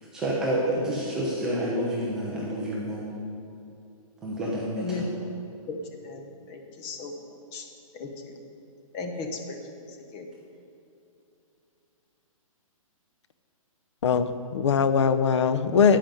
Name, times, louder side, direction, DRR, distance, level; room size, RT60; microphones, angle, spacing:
voice 1, 0.1-3.1 4.2-4.9, right 1 dB, 5° right, -5 dB, 0.3 m, -28 dB
voice 2, 6.0-7.7 7.9-8.4 8.9-10.3, left 4 dB, 15° left, 4 dB, 0.7 m, -37 dB
voice 3, 14.0-16.0, left 6 dB, 55° left, 11 dB, 0.7 m, -21 dB
13.5 x 5.1 x 9.0 m, 2.7 s
hypercardioid pair, 175°, 18 cm